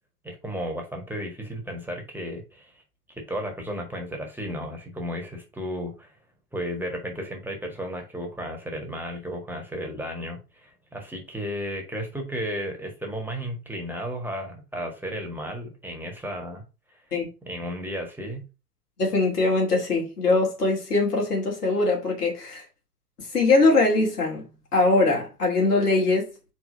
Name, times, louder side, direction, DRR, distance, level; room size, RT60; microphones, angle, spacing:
voice 1, 0.2-2.7 3.3-6.1 6.5-16.6 17.4-18.4, equal, 5° right, 1.6 m, -33 dB
voice 2, 19.0-22.6 23.3-24.4 24.7-26.3, left 3 dB, 80° left, 2.9 m, -22 dB
5.1 x 3.4 x 5.3 m
figure-of-eight pair, 95°, 46 cm